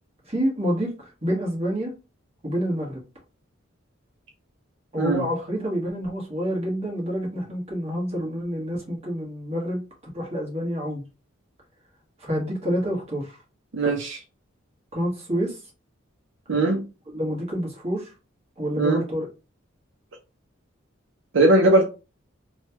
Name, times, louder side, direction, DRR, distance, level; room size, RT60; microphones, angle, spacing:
voice 1, 0.3-1.9 2.4-3.0 4.9-9.8 10.1-11.0 12.2-13.4 14.9-15.6 17.1-18.1 18.6-19.3, equal, 30° right, 1.2 m, -28 dB
voice 2, 13.7-14.2 16.5-16.8 18.8-19.0 21.3-21.9, right 2 dB, 70° right, 0.5 m, -19 dB
3.1 x 2.2 x 2.9 m
head